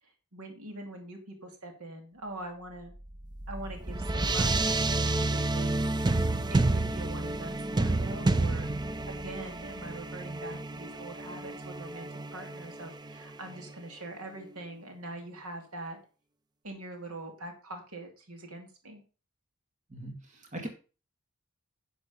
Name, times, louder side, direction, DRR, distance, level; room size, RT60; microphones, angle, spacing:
voice 1, 0.3-2.9 3.5-5.8 6.5-16.0 16.6-19.0, right 2 dB, 75° right, 4 dB, 2.6 m, -43 dB
sound 1, 3.0-13.7, right 2 dB, 20° right, 0.5 m, -30 dB
voice 2, 19.9-20.7, right 1 dB, 35° right, 4 dB, 2.1 m, -40 dB
10.5 x 6.6 x 5.4 m, 0.35 s
head